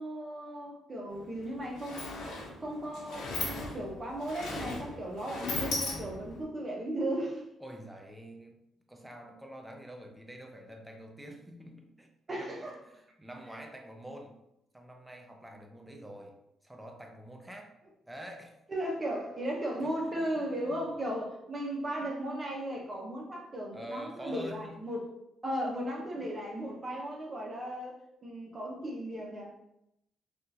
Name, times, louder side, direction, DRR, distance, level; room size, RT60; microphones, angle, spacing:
voice 1, 0.0-2.4 2.6-7.4 12.3-12.7 18.7-25.0 25.4-28.0 28.2-29.6, right 1 dB, 30° right, -1 dB, 0.8 m, -36 dB
Sliding door, 1.1-1.2 1.5-6.4, left 2 dB, 70° left, 0.9 m, -38 dB
voice 2, 7.6-8.6 8.9-12.1 12.3-14.4 14.7-16.3 16.6-17.7 18.0-18.6 19.8-19.9 20.2-21.0 23.7-24.9, equal, 5° right, 2 dB, 0.5 m, -47 dB
3.5 x 2.5 x 2.8 m, 0.83 s
cardioid pair, 90°, 0 cm